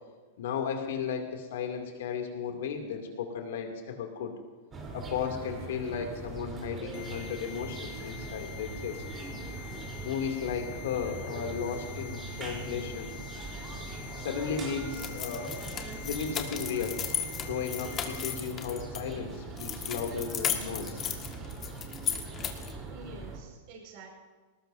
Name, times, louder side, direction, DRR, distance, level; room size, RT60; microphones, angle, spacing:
voice 1, 0.4-4.3 4.9-9.0 10.0-13.1 14.2-15.6 16.0-17.0 17.4-21.0, left 6 dB, 65° left, 3 dB, 2.6 m, -35 dB
sound 1, 4.7-23.4, right 3 dB, 25° right, 3.7 m, -41 dB
sound 2, 6.9-18.4, left 9 dB, 45° left, 1.4 m, -46 dB
sound 3, 14.9-19.0 19.6-22.8, left 8 dB, 30° left, 1.8 m, -35 dB
voice 2, 22.9-24.1, right 4 dB, 50° right, 0 dB, 5.4 m, -49 dB
19.5 x 19.0 x 2.7 m, 1.3 s
hypercardioid pair, 105°, 0 cm